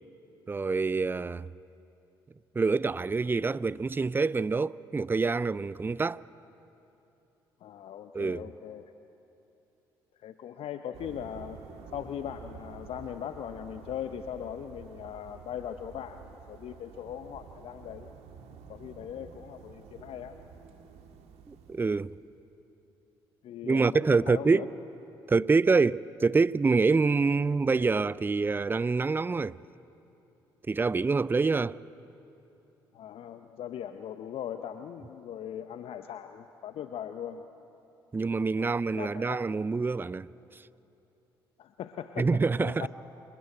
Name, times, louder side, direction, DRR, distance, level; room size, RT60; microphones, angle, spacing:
voice 1, 0.5-1.5 2.6-6.2 8.1-8.5 21.5-22.1 23.6-24.7 25.3-29.6 30.7-31.8 38.1-40.3 42.2-42.9, right 4 dB, 15° right, 0.5 m, -26 dB
voice 2, 7.6-8.9 10.2-11.6 11.9-18.1 18.7-20.4 23.4-24.7 32.9-37.4 38.6-39.4 41.6-42.9, left 9 dB, 55° left, 0.8 m, -40 dB
sound 1, 10.9-22.3, right 7 dB, 60° right, 1.8 m, -50 dB
27.0 x 19.5 x 8.0 m
figure-of-eight pair, 50°, 12 cm